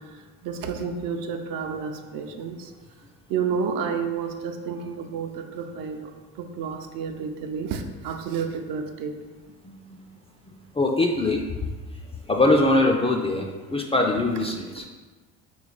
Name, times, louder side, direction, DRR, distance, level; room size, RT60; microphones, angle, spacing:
voice 1, 0.4-2.7 3.3-6.1 6.4-9.1 14.4-14.9, right 6 dB, 65° right, 5 dB, 0.5 m, -30 dB
voice 2, 9.7-10.0 10.8-11.4 12.3-14.8, left 2 dB, 15° left, 2 dB, 0.3 m, -22 dB
3.2 x 2.8 x 3.9 m, 1.3 s
supercardioid pair, 70°, 37 cm